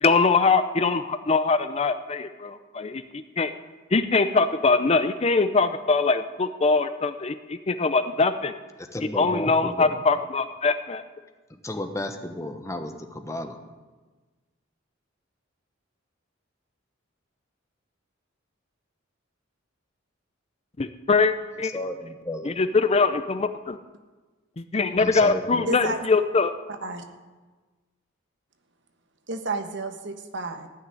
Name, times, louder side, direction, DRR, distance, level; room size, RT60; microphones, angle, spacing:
voice 1, 0.0-3.5 3.9-8.6 9.1-11.0 20.8-21.7 22.4-23.8 24.6-26.5, left 4 dB, 30° left, 11 dB, 0.5 m, -22 dB
voice 2, 8.9-9.9 11.6-13.6 21.7-22.5 25.0-25.6, left 1 dB, 15° left, 6 dB, 1.0 m, -33 dB
voice 3, 25.7-26.0 26.8-27.0 29.3-30.7, right 2 dB, 60° right, 7 dB, 1.3 m, -31 dB
15.0 x 6.5 x 9.7 m, 1.3 s
head